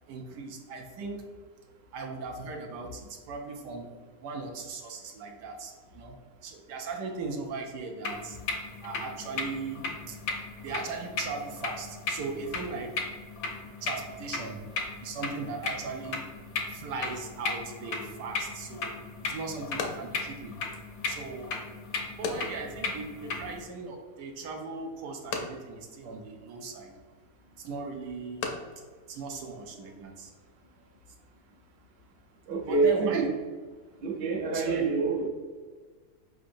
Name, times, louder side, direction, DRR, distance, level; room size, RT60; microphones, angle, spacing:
voice 1, 0.1-1.3 1.9-8.4 8.8-13.0 13.8-14.6 15.0-16.3 16.7-20.6 21.1-21.6 22.2-26.9 27.6-28.5 28.8-30.3 30.7-31.1 32.6-33.3 34.5-34.9, right 4 dB, 80° right, 2 dB, 1.2 m, -38 dB
sound 1, 8.0-23.6, left 4 dB, 60° left, 0.7 m, -36 dB
sound 2, 18.7-30.1, left 4 dB, 85° left, 1.3 m, -42 dB
voice 2, 32.5-33.3 34.0-35.3, right 4 dB, 50° right, -1 dB, 0.8 m, -26 dB
5.0 x 3.7 x 2.6 m, 1.4 s
omnidirectional pair, 1.8 m